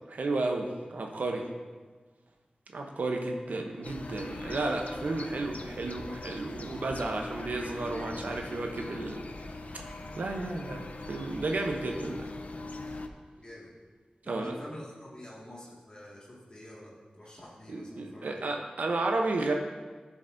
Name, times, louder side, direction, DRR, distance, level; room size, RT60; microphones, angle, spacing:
voice 1, 0.1-1.5 2.7-9.2 9.7-9.9 10.2-12.3 14.3-14.5 17.7-19.5, right 2 dB, 90° right, 2 dB, 0.8 m, -32 dB
sound 1, 3.8-13.1, left 2 dB, 65° left, 0.6 m, -41 dB
voice 2, 13.4-13.7 14.2-18.3, left 1 dB, 35° left, -5 dB, 2.0 m, -47 dB
14.0 x 7.1 x 2.7 m, 1.4 s
wide cardioid pair, 85°, 3 cm